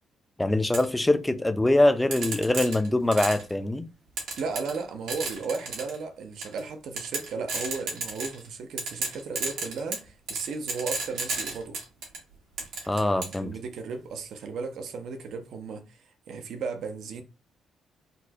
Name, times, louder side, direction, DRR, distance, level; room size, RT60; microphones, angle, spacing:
voice 1, 0.4-3.9 12.9-13.5, left 1 dB, 10° left, 0.4 m, -23 dB
sound 1, 0.7-0.8 2.1-3.5 4.2-4.8 5.1-5.9 6.4-6.6 7.0-8.5 8.8-12.2 12.6-13.4, right 3 dB, 85° right, 1.5 m, -32 dB
voice 2, 4.4-11.8 13.1-17.2, right 4 dB, 70° right, 0.6 m, -35 dB
4.1 x 2.2 x 2.7 m
cardioid pair, 90°, 0 cm